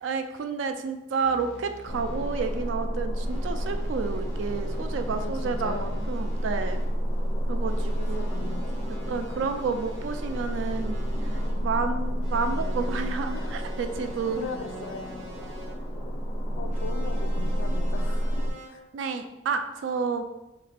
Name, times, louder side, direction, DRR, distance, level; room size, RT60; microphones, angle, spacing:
voice 1, 0.0-6.8 7.5-8.5 8.9-11.0 11.3-14.5 18.9-20.3, right 5 dB, 70° right, 8 dB, 0.3 m, -30 dB
sound 1, 1.2-2.8 3.1-7.0 7.6-11.7 12.2-15.8 16.7-18.7, right 1 dB, 90° right, 0.7 m, -46 dB
sound 2, 1.9-18.5, equal, 25° left, 0.4 m, -30 dB
voice 2, 5.1-6.0 8.0-8.6 9.1-9.5 13.3-13.6 14.4-15.1 16.6-18.8, left 5 dB, 90° left, 8 dB, 0.3 m, -39 dB
3.1 x 2.4 x 3.3 m, 0.96 s
head